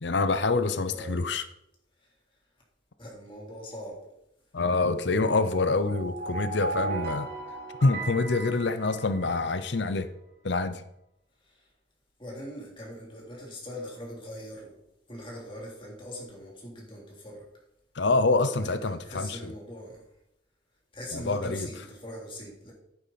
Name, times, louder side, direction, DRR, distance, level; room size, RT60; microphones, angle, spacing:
voice 1, 0.0-1.4 4.5-7.3 7.8-10.1 10.4-10.8 18.0-19.5 21.1-21.7, left 3 dB, 65° left, 11 dB, 0.7 m, -26 dB
voice 2, 0.9-1.2 3.0-4.1 11.4-11.7 12.2-14.8 15.1-17.5 18.4-20.0 20.9-22.7, equal, 25° left, -3 dB, 3.4 m, -41 dB
sound 1, 5.6-9.6, right 3 dB, 55° right, 3.2 m, -36 dB
10.5 x 9.8 x 4.2 m, 0.82 s
head